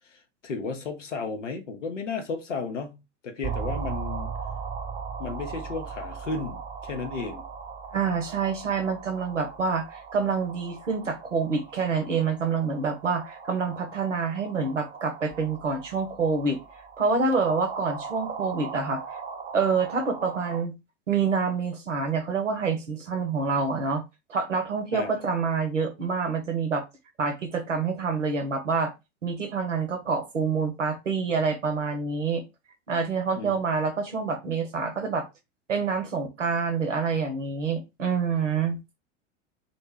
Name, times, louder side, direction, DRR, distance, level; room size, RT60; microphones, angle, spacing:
voice 1, 0.1-4.3 5.2-7.4 24.9-25.1 33.4-33.6, left 4 dB, 85° left, 0.6 m, -34 dB
sound 1, 3.4-20.6, right 6 dB, 20° right, 0.5 m, -38 dB
voice 2, 7.9-16.6 17.0-19.0 19.5-20.7 21.1-24.0 24.3-26.8 27.2-28.9 29.2-32.4 32.9-35.3 35.7-38.8, right 5 dB, 90° right, 0.7 m, -27 dB
2.1 x 2.1 x 3.4 m
figure-of-eight pair, 80°, 36 cm